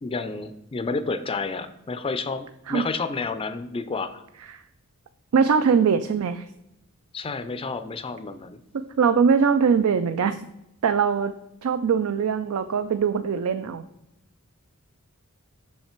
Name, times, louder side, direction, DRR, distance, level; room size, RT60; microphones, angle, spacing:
voice 1, 0.0-4.2 7.1-8.6, left 4 dB, 25° left, 11 dB, 0.4 m, -30 dB
voice 2, 5.3-6.4 8.7-10.4 10.8-11.3 11.6-13.8, right 6 dB, 70° right, 11 dB, 0.4 m, -21 dB
6.7 x 5.6 x 4.4 m, 0.87 s
head